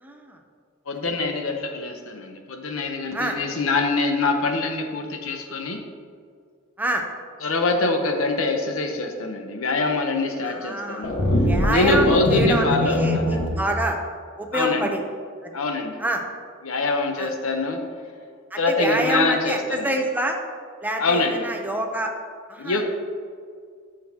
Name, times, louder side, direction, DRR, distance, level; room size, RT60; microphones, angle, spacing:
voice 1, 0.0-0.4 3.1-3.4 6.8-7.0 10.4-11.1 11.4-14.0 14.4-15.0 16.0-16.2 17.2-17.3 18.5-20.4 20.8-22.1 22.5-22.8, right 1 dB, 10° right, 2 dB, 0.7 m, -26 dB
voice 2, 0.9-5.8 7.4-11.2 11.7-13.6 14.5-14.9 15.5-16.0 16.6-17.8 18.6-19.9 21.0-21.5 22.6-22.8, left 3 dB, 80° left, 5 dB, 0.9 m, -24 dB
sound 1, 11.0-13.5, left 1 dB, 55° left, 1.5 m, -22 dB
12.0 x 6.3 x 2.9 m, 2.1 s
head